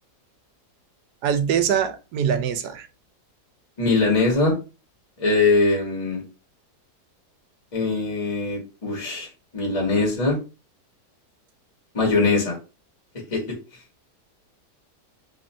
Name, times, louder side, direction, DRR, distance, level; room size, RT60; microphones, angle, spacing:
voice 1, 1.2-2.9, right 8 dB, 85° right, 1.2 m, -23 dB
voice 2, 3.8-4.5 5.2-6.2 7.7-9.3 9.5-10.4 11.9-12.6 13.3-13.4, left 3 dB, 25° left, 1.1 m, -21 dB
3.1 x 2.5 x 4.2 m
omnidirectional pair, 1.7 m